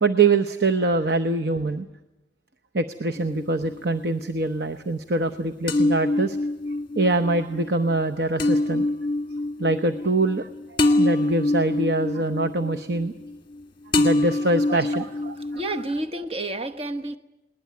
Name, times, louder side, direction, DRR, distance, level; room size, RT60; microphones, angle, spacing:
voice 1, 0.0-1.9 2.7-6.4 7.0-8.9 9.6-13.1 14.0-15.6, right 3 dB, 65° right, 0.9 m, -24 dB
sound 1, 3.2-4.0 5.7-13.6 13.9-16.0, left 2 dB, 30° left, 1.7 m, -25 dB
voice 2, 14.7-15.1 15.4-17.2, right 2 dB, 35° right, 1.0 m, -30 dB
20.5 x 19.5 x 9.3 m
head